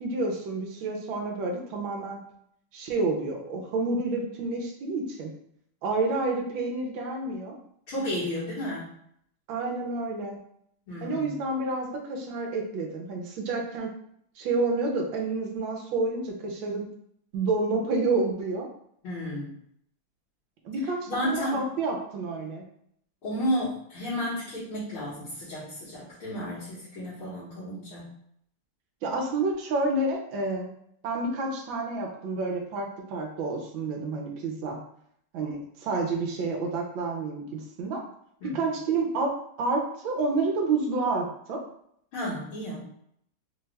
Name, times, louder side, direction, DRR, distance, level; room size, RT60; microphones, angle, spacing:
voice 1, 0.0-2.2 2.7-5.3 5.8-7.5 9.5-10.4 11.0-13.9 14.4-16.9 17.3-18.7 20.6-22.6 29.0-30.7 31.0-34.8 35.3-38.0 38.5-41.6, right 3 dB, 70° right, 1 dB, 1.4 m, -29 dB
voice 2, 7.9-8.9 10.9-11.3 19.0-19.6 21.1-21.7 23.2-28.1 38.4-38.7 42.1-42.8, equal, 75° left, -11 dB, 2.3 m, -32 dB
4.6 x 2.4 x 3.2 m, 0.70 s
omnidirectional pair, 2.4 m